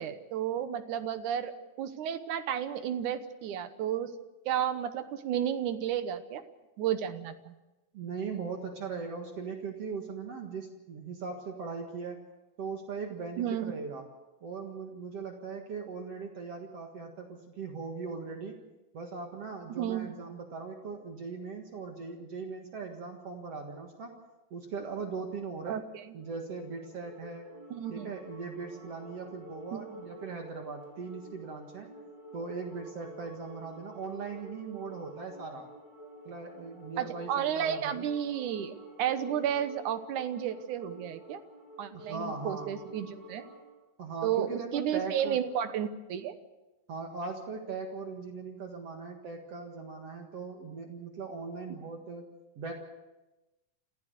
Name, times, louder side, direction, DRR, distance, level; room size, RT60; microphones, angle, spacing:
voice 1, 0.0-1.5 1.8-4.1 4.5-6.4 6.8-7.5 13.4-13.7 19.7-20.1 25.7-25.8 27.7-28.1 29.7-30.0 37.0-41.4 41.8-43.5 44.2-46.4, right 9 dB, 70° right, 10 dB, 2.4 m, -32 dB
voice 2, 7.9-12.2 12.6-14.1 14.4-18.6 18.9-24.2 24.5-25.8 26.1-27.5 27.9-31.9 32.3-35.7 36.3-38.1 41.9-42.7 44.0-45.4 46.9-52.3 52.6-52.7, right 4 dB, 50° right, 3 dB, 2.5 m, -39 dB
sound 1, 26.1-43.7, equal, 30° right, 6.9 m, -50 dB
27.0 x 15.5 x 6.6 m, 1.0 s
omnidirectional pair, 3.8 m